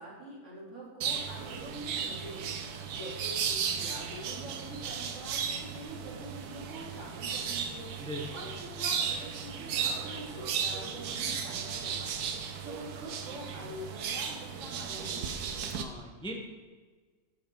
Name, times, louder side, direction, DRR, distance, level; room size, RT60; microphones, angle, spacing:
voice 1, 0.0-2.6 2.9-8.0 8.3-15.3, right 1 dB, 50° right, -6 dB, 3.1 m, -45 dB
sound 1, 1.0-15.8, right 7 dB, 80° right, 1.3 m, -35 dB
voice 2, 8.0-8.4 15.7-16.4, equal, 5° left, 1 dB, 0.7 m, -40 dB
13.0 x 5.2 x 4.5 m, 1.4 s
omnidirectional pair, 1.6 m